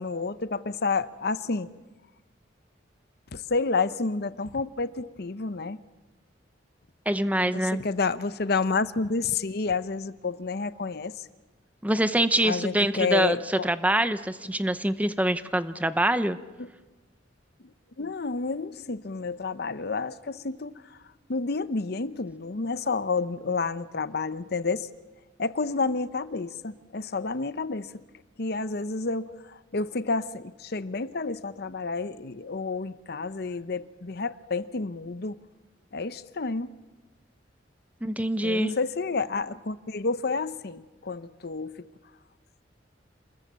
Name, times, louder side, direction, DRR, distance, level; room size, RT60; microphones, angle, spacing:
voice 1, 0.0-1.7 3.3-5.8 7.4-11.3 12.4-13.7 16.6-16.7 18.0-21.0 21.3-24.9 25.4-27.9 28.4-35.4 35.9-36.7 38.4-41.9, left 4 dB, 55° left, 14 dB, 0.8 m, -30 dB
voice 2, 7.1-7.8 11.8-13.4 13.6-16.4 38.0-38.8, right 1 dB, 10° right, 11 dB, 0.8 m, -25 dB
28.0 x 21.5 x 7.4 m, 1.2 s
head